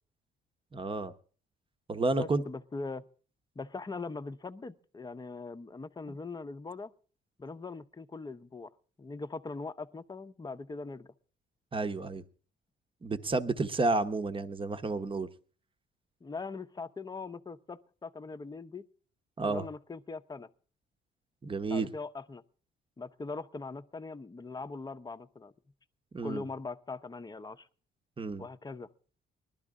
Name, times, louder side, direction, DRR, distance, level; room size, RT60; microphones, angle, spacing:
voice 1, 0.7-1.1 1.9-2.4 6.1-6.2 11.7-12.2 13.0-15.3 19.4-19.6 21.4-21.9 26.1-26.4 28.2-28.4, right 3 dB, 25° right, 10 dB, 1.0 m, -31 dB
voice 2, 2.1-3.0 3.6-6.9 7.4-8.7 9.0-11.1 16.2-18.8 19.5-20.5 21.7-22.4 23.0-25.5 26.2-27.7 28.4-28.9, left 3 dB, 20° left, 11 dB, 0.7 m, -41 dB
20.0 x 12.0 x 3.7 m, 0.40 s
cardioid pair, 90°, 20 cm